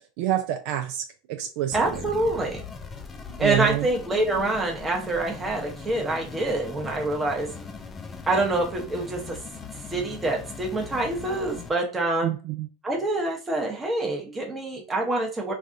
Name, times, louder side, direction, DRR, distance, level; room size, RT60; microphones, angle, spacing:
voice 1, 0.2-2.1 3.4-3.9 12.2-12.7, right 12 dB, 65° right, 6 dB, 0.4 m, -28 dB
sound 1, 1.7-11.7, left 5 dB, 20° left, 0.5 m, -40 dB
voice 2, 1.7-2.6 3.4-7.5 8.3-9.4 9.9-12.3 12.8-15.5, right 2 dB, 15° right, 1 dB, 0.9 m, -26 dB
3.3 x 2.3 x 2.6 m, 0.36 s
supercardioid pair, 115°, 0 cm